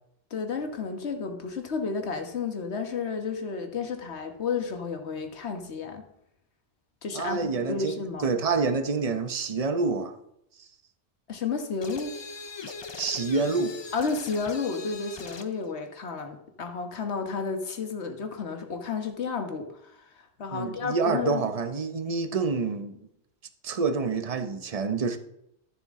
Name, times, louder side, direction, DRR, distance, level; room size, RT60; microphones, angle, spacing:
voice 1, 0.3-6.0 7.0-8.3 11.3-12.2 13.9-21.4, left 5 dB, 75° left, 1.5 m, -32 dB
voice 2, 7.1-8.0 8.2-10.1 13.0-13.7 20.5-23.0 23.6-25.2, right 4 dB, 35° right, 0.8 m, -27 dB
sound 1, 11.8-15.6, left 4 dB, 40° left, 0.4 m, -40 dB
13.0 x 7.1 x 3.7 m
omnidirectional pair, 1.1 m